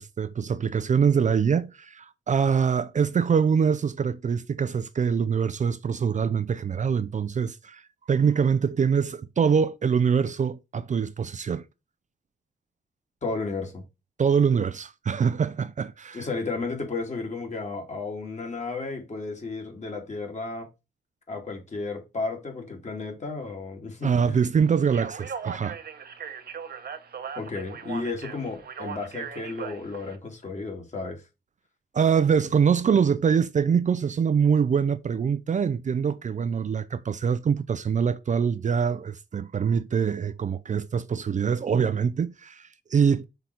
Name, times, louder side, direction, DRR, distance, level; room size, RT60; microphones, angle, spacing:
voice 1, 0.0-7.8 8.1-11.6 14.2-16.3 24.0-25.8 31.9-43.2, right 6 dB, 45° right, 0.5 m, -24 dB
voice 2, 13.2-13.8 16.1-20.7 21.3-24.4 27.4-31.2, left 3 dB, 40° left, 2.3 m, -33 dB
Speech, 24.8-30.2, right 6 dB, 60° right, 1.1 m, -38 dB
5.7 x 4.0 x 4.5 m
cardioid pair, 100°, 18 cm